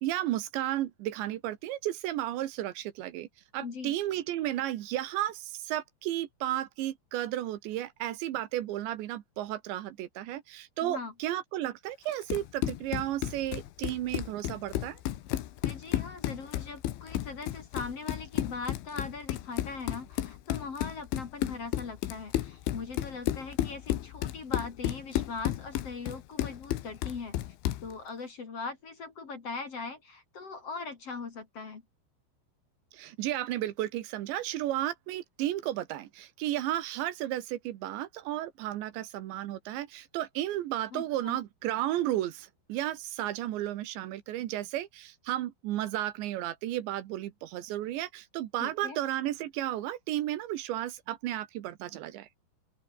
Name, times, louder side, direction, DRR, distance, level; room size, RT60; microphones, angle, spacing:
voice 1, 0.0-3.3 3.5-15.0 32.9-52.3, right 13 dB, 80° right, 3.6 m, -33 dB
voice 2, 3.6-3.9 10.8-11.1 15.6-27.3 27.8-31.8 40.9-41.4 48.6-49.0, left 4 dB, 40° left, 3.0 m, -40 dB
Run, 12.1-27.9, left 13 dB, 90° left, 4.0 m, -33 dB
open air
omnidirectional pair, 5.3 m